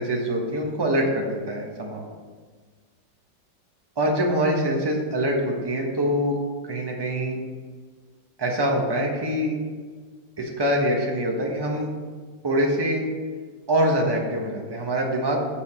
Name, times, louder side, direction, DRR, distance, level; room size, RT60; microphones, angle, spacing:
voice 1, 0.0-2.1 4.0-7.4 8.4-9.6 10.4-11.9 12.4-13.0 13.7-15.5, equal, 15° right, -1 dB, 1.0 m, -24 dB
7.0 x 5.2 x 7.1 m, 1.5 s
omnidirectional pair, 2.1 m